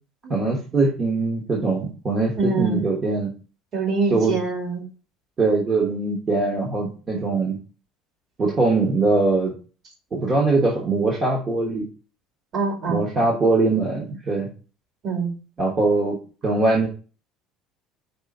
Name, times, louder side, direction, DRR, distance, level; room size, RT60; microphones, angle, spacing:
voice 1, 0.3-3.3 4.1-4.3 5.4-7.6 8.4-9.5 10.1-11.9 12.9-14.5 15.6-16.2 16.4-16.9, right 3 dB, 25° right, -2 dB, 1.3 m, -22 dB
voice 2, 2.4-2.8 3.7-4.8 12.5-13.3 15.0-15.3, right 4 dB, 45° right, 1 dB, 2.4 m, -25 dB
5.5 x 3.4 x 5.2 m, 0.36 s
cardioid pair, 150°, 0 cm